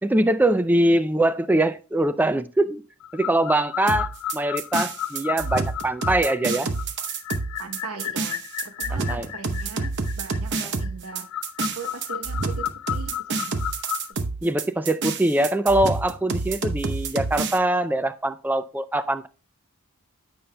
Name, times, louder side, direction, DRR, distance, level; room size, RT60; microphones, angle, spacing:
voice 1, 0.0-2.8 3.1-6.7 8.9-9.3 14.4-19.3, right 1 dB, 10° right, 0.3 m, -23 dB
sound 1, 3.0-14.1, left 12 dB, 75° left, 0.4 m, -34 dB
sound 2, 3.9-17.6, right 4 dB, 50° right, 0.8 m, -28 dB
voice 2, 7.6-9.9 10.2-11.3 11.8-13.5 14.1-14.2 15.4-15.5, right 4 dB, 80° right, 0.9 m, -39 dB
14.5 x 5.5 x 2.2 m
head